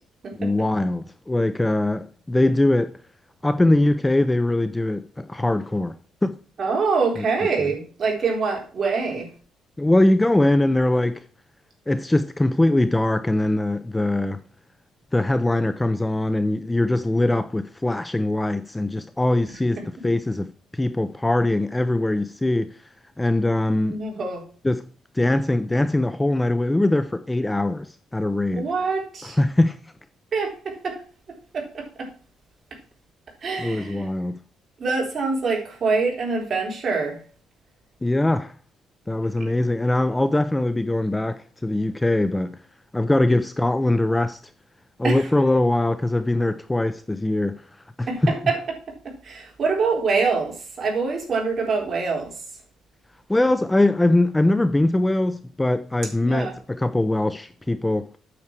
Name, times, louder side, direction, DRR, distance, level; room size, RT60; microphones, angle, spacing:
voice 1, 0.4-2.9 3.4-6.0 6.2-6.4 7.2-7.3 7.6-7.7 9.8-11.2 11.9-14.4 15.1-22.8 23.2-24.0 24.6-24.8 25.1-28.7 29.2-29.9 33.6-34.4 38.0-38.5 39.1-42.6 42.9-44.4 45.0-47.7 48.0-48.3 53.3-58.1, left 1 dB, 10° left, 0.5 m, -22 dB
voice 2, 6.6-9.3 23.8-24.4 28.5-29.4 30.3-31.0 31.5-32.1 33.4-34.1 34.8-37.2 45.0-45.3 48.1-48.2 48.5-48.6 48.9-52.3 56.2-56.5, right 4 dB, 40° right, 3.7 m, -25 dB
8.8 x 6.5 x 4.6 m
cardioid pair, 135°, 0 cm